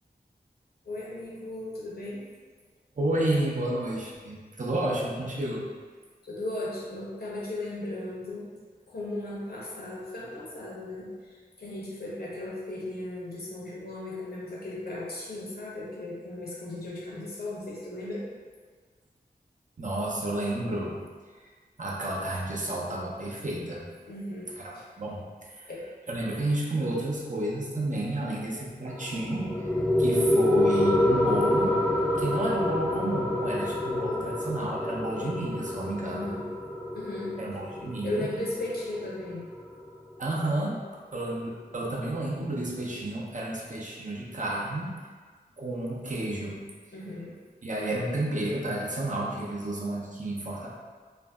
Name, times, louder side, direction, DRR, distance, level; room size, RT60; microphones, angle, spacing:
voice 1, 0.9-2.2 6.2-8.5 8.9-11.3 11.6-18.2 24.0-24.9 25.7-25.8 36.0-36.4 36.9-37.3 38.0-39.4 46.9-47.4, left 2 dB, 70° left, -6 dB, 0.8 m, -36 dB
voice 2, 3.0-5.6 19.8-21.0 21.4-21.5 21.8-23.8 24.6-25.7 26.1-29.7 30.0-31.8 32.2-36.3 37.4-38.3 40.2-40.8 41.1-45.0 45.6-46.6 47.6-50.7, right 1 dB, 50° right, -4 dB, 0.6 m, -31 dB
sound 1, 28.9-39.9, left 1 dB, 5° left, 0.4 m, -27 dB
2.5 x 2.0 x 3.4 m, 1.5 s
wide cardioid pair, 50°, 17 cm